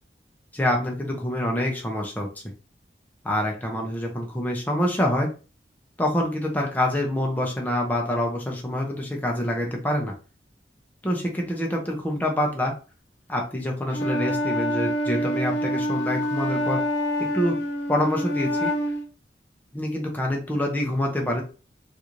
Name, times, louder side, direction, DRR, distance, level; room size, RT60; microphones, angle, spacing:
voice 1, 0.5-2.3 3.2-5.3 6.0-10.1 11.0-12.8 13.3-16.8 17.2-17.6 17.9-18.7 19.7-21.4, left 1 dB, 10° left, 0 dB, 0.6 m, -26 dB
Wind instrument woodwind instrument, 13.9-19.1, equal, 80° left, 0.8 m, -26 dB
3.8 x 2.5 x 3.0 m, 0.34 s
head